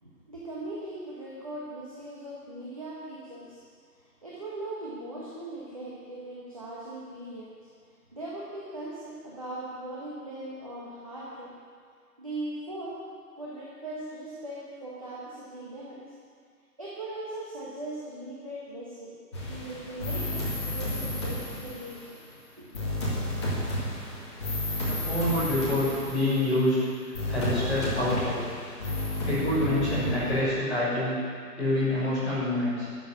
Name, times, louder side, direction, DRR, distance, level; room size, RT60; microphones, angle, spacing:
voice 1, 0.0-3.6 4.0-7.5 8.1-11.5 12.2-13.0 13.4-16.0 16.8-19.2 19.5-22.2 22.6-23.0, right 1 dB, 20° right, -8 dB, 1.3 m, -39 dB
sound 1, 19.3-22.0 22.7-26.7 27.1-30.4, left 1 dB, 15° left, 2.1 m, -32 dB
voice 2, 24.8-26.8 27.3-28.3 29.2-31.2 31.6-32.8, left 1 dB, ahead, -19 dB, 2.8 m, -26 dB
14.0 x 6.9 x 9.1 m, 2.1 s
hypercardioid pair, 175°, 48 cm